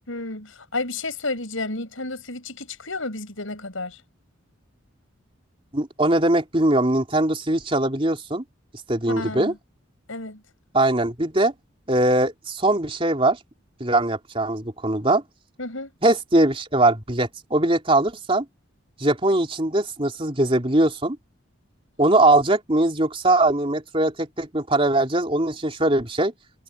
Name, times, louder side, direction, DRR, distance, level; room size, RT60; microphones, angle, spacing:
voice 1, 0.1-4.0 9.2-9.6 10.1-10.4 15.6-15.9, left 2 dB, 85° left, 6.3 m, -31 dB
voice 2, 5.7-8.4 8.9-9.5 10.7-11.5 11.9-13.4 13.8-15.2 16.0-18.5 19.0-21.2 22.0-26.3, right 2 dB, 25° right, 3.6 m, -21 dB
head